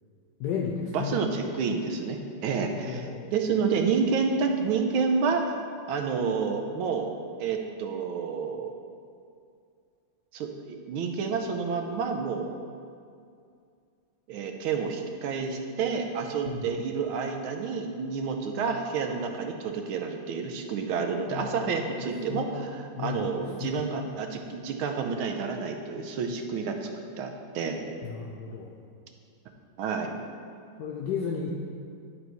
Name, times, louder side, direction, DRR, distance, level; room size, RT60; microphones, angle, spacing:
voice 1, 0.4-1.2 2.9-3.3 16.5-16.7 21.3-21.7 22.3-23.3 23.6-23.9 28.0-28.7 30.8-31.5, left 6 dB, 70° left, -2 dB, 1.1 m, -34 dB
voice 2, 0.9-5.6 5.9-7.1 7.4-8.7 10.3-12.5 14.3-26.9 27.2-27.8 29.8-30.1, right 5 dB, 75° right, 4 dB, 1.5 m, -29 dB
10.5 x 4.0 x 4.5 m, 2.3 s
omnidirectional pair, 2.4 m